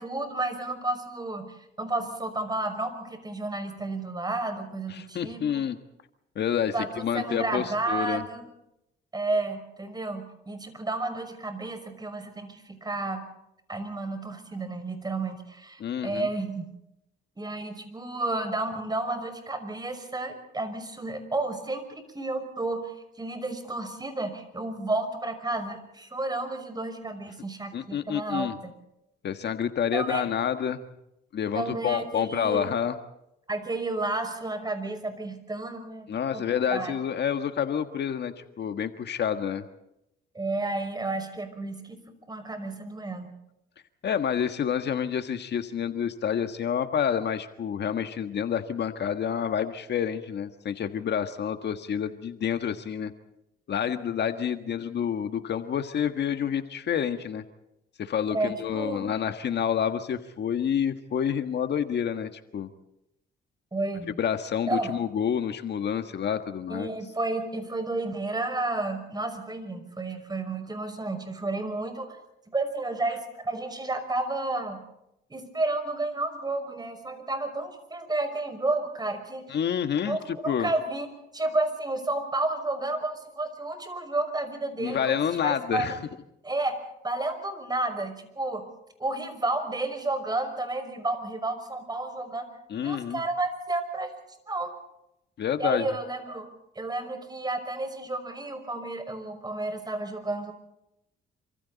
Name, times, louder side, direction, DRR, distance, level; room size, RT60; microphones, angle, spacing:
voice 1, 0.0-5.6 6.7-8.5 9.1-13.2 13.7-16.7 17.4-28.7 29.9-30.3 31.5-32.7 33.5-36.1 36.3-36.4 36.7-37.0 40.3-42.0 42.3-43.3 58.3-59.1 63.7-64.2 64.7-65.0 66.7-72.2 72.5-74.8 75.3-79.6 80.0-86.0 86.4-86.8 87.0-88.7 89.0-92.5 92.8-94.2 94.5-94.7 95.6-96.5 96.7-100.5, right 2 dB, 20° right, 7 dB, 5.9 m, -31 dB
voice 2, 4.9-5.8 6.3-8.2 15.8-16.3 27.7-28.6 29.2-30.8 31.3-33.0 36.1-39.7 44.0-53.1 53.7-57.4 58.0-62.7 64.2-66.9 79.5-80.2 80.4-80.7 84.8-85.9 92.7-93.2 95.4-95.9, left 8 dB, 60° left, 8 dB, 1.6 m, -28 dB
28.0 x 26.0 x 4.1 m, 0.84 s
cardioid pair, 90°, 20 cm